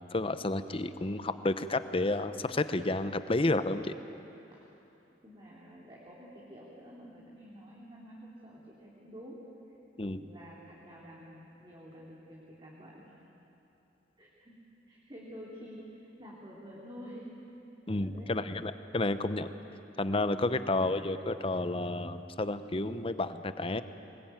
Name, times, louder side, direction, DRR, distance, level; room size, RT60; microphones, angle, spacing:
voice 1, 0.1-3.9 10.0-10.2 17.9-19.5 20.0-23.8, left 2 dB, 30° left, 11 dB, 0.8 m, -31 dB
voice 2, 5.2-9.4 10.1-13.1 14.2-14.6 14.9-17.4 18.0-18.3 20.5-20.7, equal, 25° right, -5 dB, 3.2 m, -49 dB
24.0 x 20.5 x 9.1 m, 2.9 s
head